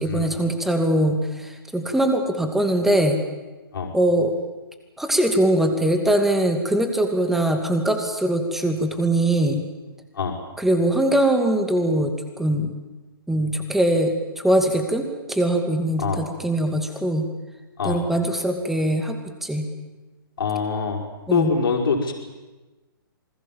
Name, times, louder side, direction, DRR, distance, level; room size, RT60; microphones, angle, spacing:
voice 1, 0.0-3.2 3.9-4.3 5.0-9.6 10.6-12.7 13.3-17.3 17.8-19.7 21.3-21.5, right 1 dB, ahead, 6 dB, 2.4 m, -22 dB
voice 2, 20.4-21.0 21.3-22.1, left 5 dB, 70° left, 1 dB, 5.4 m, -24 dB
27.5 x 21.0 x 7.5 m, 1.2 s
hypercardioid pair, 140°, 12 cm